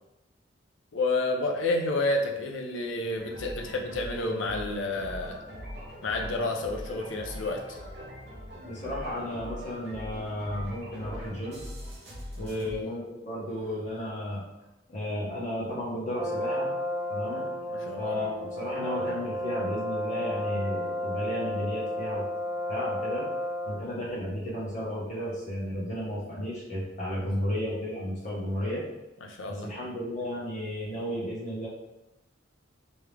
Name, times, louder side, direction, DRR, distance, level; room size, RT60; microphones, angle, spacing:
voice 1, 0.9-5.4 6.0-7.8 12.5-12.7 17.4-18.2 27.2-27.3 29.2-29.7, left 2 dB, 75° left, 1 dB, 0.6 m, -30 dB
sound 1, 3.1-12.7, equal, 55° right, 1.1 m, -42 dB
voice 2, 8.6-11.6 12.3-14.4 14.9-16.7 17.1-17.4 18.0-22.3 22.7-23.3 23.7-28.8 29.5-31.7, equal, 40° left, -6 dB, 1.3 m, -33 dB
Brass instrument, 16.2-24.0, left 1 dB, 10° right, 0.6 m, -32 dB
3.5 x 3.1 x 3.4 m, 0.95 s
head